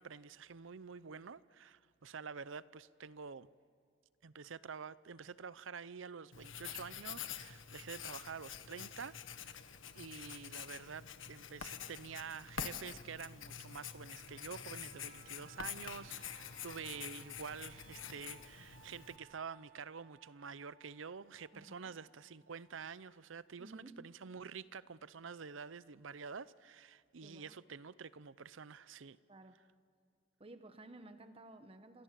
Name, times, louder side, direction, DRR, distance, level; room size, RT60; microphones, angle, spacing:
voice 1, 0.0-3.5 4.2-9.6 9.9-29.2, right 6 dB, 80° right, 0.7 m, -48 dB
Writing, 6.3-19.2, left 8 dB, 85° left, 1.4 m, -47 dB
sound 1, 13.9-23.5 23.9-24.0, right 7 dB, 55° right, 1.9 m, -64 dB
voice 2, 21.5-21.9 23.6-24.0 27.2-27.5 29.3-29.6 30.4-32.0, right 2 dB, 30° right, 1.2 m, -54 dB
27.5 x 26.5 x 7.6 m
head